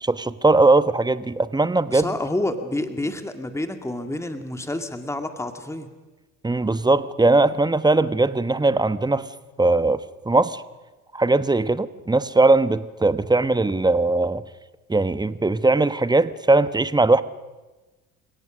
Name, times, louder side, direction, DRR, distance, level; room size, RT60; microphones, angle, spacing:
voice 1, 0.0-2.1 6.4-9.3 9.6-10.0 10.3-10.6 11.1-14.4 14.9-17.2, right 2 dB, 10° right, 14 dB, 1.1 m, -19 dB
voice 2, 1.9-5.9, left 1 dB, 5° left, 7 dB, 2.2 m, -28 dB
29.5 x 17.5 x 6.4 m, 1.2 s
hypercardioid pair, 60°, 41 cm